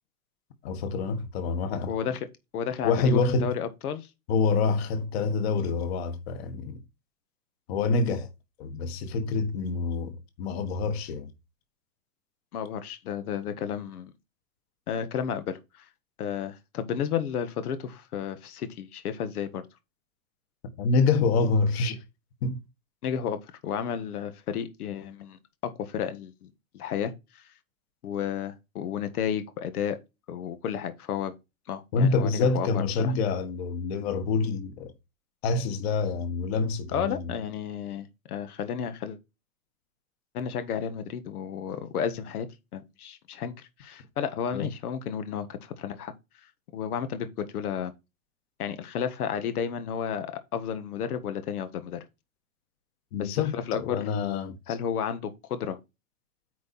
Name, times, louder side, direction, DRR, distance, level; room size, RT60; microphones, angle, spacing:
voice 1, 0.6-1.9 2.8-3.5 4.3-6.8 7.7-8.3 8.6-11.3 20.8-22.0 22.4-22.6 31.9-34.9 35.4-37.3 44.5-44.7 53.1-54.6, left 4 dB, 45° left, 1.5 m, -26 dB
voice 2, 1.9-2.2 2.5-4.1 12.5-14.1 14.9-15.6 16.2-19.6 23.0-27.4 28.0-30.0 30.3-31.3 31.7-33.1 36.9-39.2 40.3-42.5 42.7-46.1 46.7-47.9 48.6-52.0 53.2-54.0 54.7-55.8, left 8 dB, 90° left, 1.6 m, -32 dB
9.4 x 4.3 x 4.2 m
supercardioid pair, 170°, 44 cm